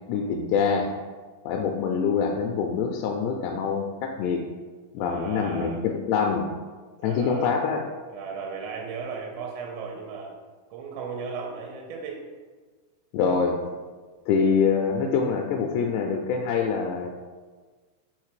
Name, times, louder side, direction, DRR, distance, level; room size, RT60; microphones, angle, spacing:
voice 1, 0.1-0.9 1.5-4.4 4.9-6.5 7.0-7.9 13.1-13.7 14.3-17.1, left 6 dB, 85° left, 2 dB, 2.5 m, -25 dB
voice 2, 5.0-5.9 7.0-7.5 8.1-10.3 10.7-12.2, right 5 dB, 90° right, 0 dB, 2.9 m, -36 dB
6.4 x 4.2 x 4.9 m, 1.4 s
omnidirectional pair, 5.1 m